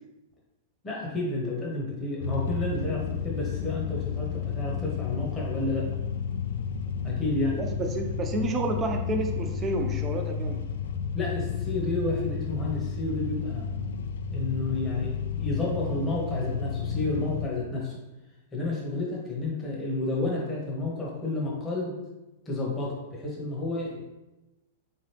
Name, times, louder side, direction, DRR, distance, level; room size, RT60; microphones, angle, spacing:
voice 1, 0.8-5.8 7.0-7.6 11.1-13.7 14.3-18.0 18.5-22.0 22.5-24.0, left 2 dB, 15° left, -4 dB, 1.1 m, -31 dB
sound 1, 2.2-17.5, left 7 dB, 75° left, 0.3 m, -32 dB
voice 2, 7.6-10.6, right 2 dB, 20° right, 4 dB, 0.5 m, -30 dB
3.6 x 2.9 x 3.3 m, 1.0 s
hypercardioid pair, 135°, 0 cm